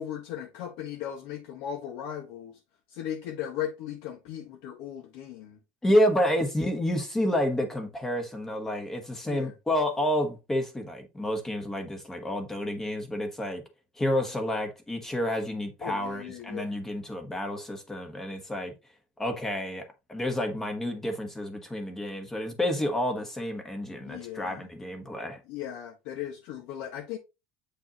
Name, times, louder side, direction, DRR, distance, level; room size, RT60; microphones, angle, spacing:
voice 1, 0.0-2.6 2.9-5.6 9.3-9.5 15.8-16.8 24.0-24.7 25.5-27.2, left 10 dB, 65° left, 1.5 m, -37 dB
voice 2, 5.8-13.6 14.0-18.7 19.2-19.8 20.1-25.4, left 1 dB, 10° left, 1.2 m, -29 dB
7.9 x 5.1 x 2.9 m
cardioid pair, 170°, 5 cm